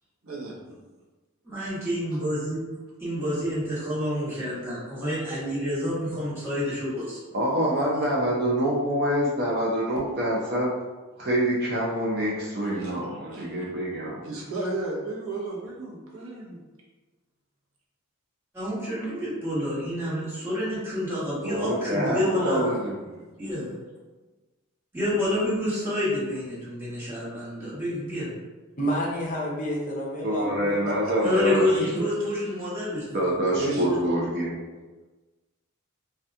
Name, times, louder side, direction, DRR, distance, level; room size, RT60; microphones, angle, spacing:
voice 1, 0.2-0.6 12.8-12.9 13.3-13.5 14.2-16.6 22.0-22.7 30.8-31.1 33.6-33.9, right 2 dB, 90° right, -4 dB, 0.8 m, -32 dB
voice 2, 1.4-2.6 3.0-7.3 18.5-22.7 23.4-23.7 24.9-28.3 31.2-34.0, left 1 dB, 10° right, -11 dB, 1.2 m, -28 dB
voice 3, 7.3-10.7 11.2-14.2 21.4-22.9 30.2-31.6 33.1-34.5, equal, 45° right, -4 dB, 0.6 m, -26 dB
voice 4, 28.8-31.1, equal, 40° left, -3 dB, 0.6 m, -30 dB
2.7 x 2.3 x 3.4 m, 1.2 s
head